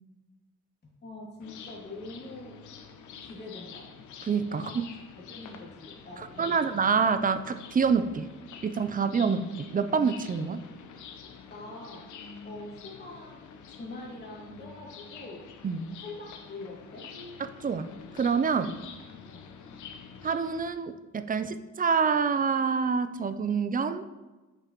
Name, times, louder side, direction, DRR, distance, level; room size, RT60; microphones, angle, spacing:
voice 1, 0.8-2.6 3.2-3.9 4.5-4.7 5.1-6.9 11.5-12.1 12.4-13.4 13.7-15.5 16.0-17.1 19.3-19.5, left 2 dB, 35° left, -3 dB, 2.5 m, -44 dB
sound 1, 1.4-20.7, left 6 dB, 75° left, 0.8 m, -47 dB
voice 2, 4.3-4.6 6.4-8.3 8.6-10.6 15.6-15.8 17.4-17.9 18.1-18.8 20.2-24.0, right 5 dB, 30° right, 11 dB, 0.5 m, -27 dB
8.7 x 6.7 x 3.0 m, 1.2 s
cardioid pair, 90°, 30 cm